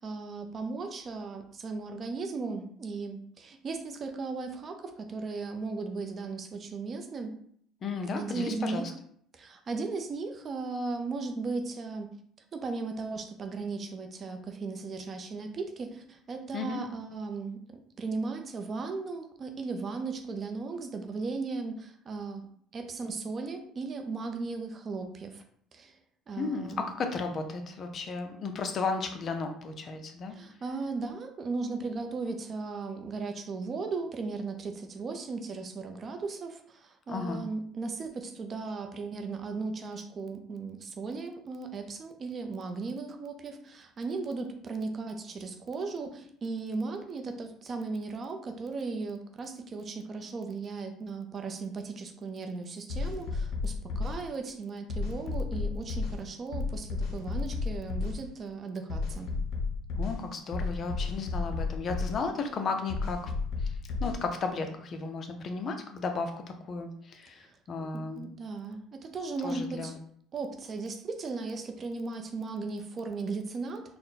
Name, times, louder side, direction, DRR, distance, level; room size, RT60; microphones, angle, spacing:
voice 1, 0.0-7.3 8.1-8.9 9.3-12.1 12.5-22.5 22.7-25.4 25.7-26.0 26.3-26.9 30.3-59.3 67.4-67.5 67.8-69.9 70.3-73.8, right 4 dB, 35° right, 5 dB, 0.6 m, -36 dB
voice 2, 7.8-8.9 16.5-16.8 26.4-30.3 37.1-37.5 60.0-63.3 63.6-63.7 64.0-66.3 66.6-68.3 69.4-69.9, left 4 dB, 40° left, 6 dB, 0.6 m, -34 dB
sound 1, 52.9-54.2 54.9-56.2 56.5-58.2 58.9-60.2 60.5-62.2 62.9-64.2, left 4 dB, 80° left, 0.7 m, -32 dB
4.1 x 2.1 x 4.1 m, 0.63 s
cardioid pair, 115°, 0 cm